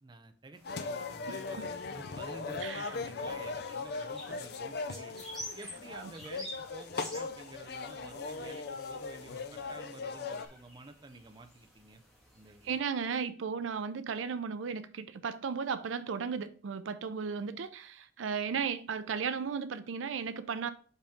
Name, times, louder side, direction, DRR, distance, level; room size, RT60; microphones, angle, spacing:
voice 1, 0.0-5.2 5.6-12.0 12.3-12.8, right 2 dB, 25° right, 0.6 m, -51 dB
sound 1, 0.5-12.8, equal, ahead, 2.0 m, -51 dB
sound 2, 0.6-10.5, left 4 dB, 60° left, 0.5 m, -39 dB
voice 2, 2.6-2.9 4.9-5.0 5.9-6.1 12.6-20.7, right 6 dB, 90° right, 0.5 m, -35 dB
5.4 x 5.2 x 3.5 m
head